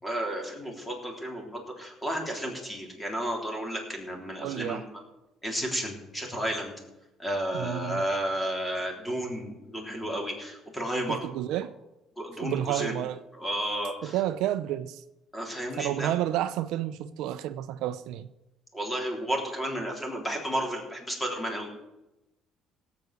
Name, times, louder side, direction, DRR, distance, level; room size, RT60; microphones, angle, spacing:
voice 1, 0.0-4.8 5.4-6.7 7.2-11.2 12.2-12.9 13.3-14.2 15.3-16.1 18.7-21.7, right 1 dB, 10° left, 3.6 m, -32 dB
voice 2, 4.4-4.9 7.5-8.0 11.1-11.7 12.3-13.2 14.0-15.0 15.8-18.3, right 12 dB, 75° right, 0.7 m, -30 dB
17.5 x 8.3 x 6.7 m
cardioid pair, 145°, 0 cm